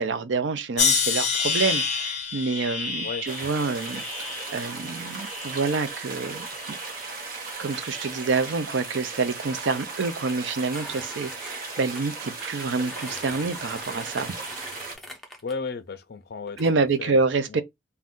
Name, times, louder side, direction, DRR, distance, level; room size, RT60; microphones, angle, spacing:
voice 1, 0.0-6.8 7.6-14.3 16.6-17.6, right 4 dB, 65° right, 0.4 m, -27 dB
sound 1, 0.8-5.9 6.4-7.1 7.8-8.1, left 5 dB, 35° left, 0.8 m, -29 dB
sound 2, 3.3-15.0, right 3 dB, 45° right, 0.9 m, -37 dB
sound 3, 10.3-10.4 10.7-12.0 12.8-15.5 16.5-16.7, left 1 dB, ahead, 0.6 m, -42 dB
voice 2, 15.4-17.2 17.5-17.6, left 4 dB, 55° left, 0.4 m, -34 dB
2.5 x 2.2 x 3.5 m
head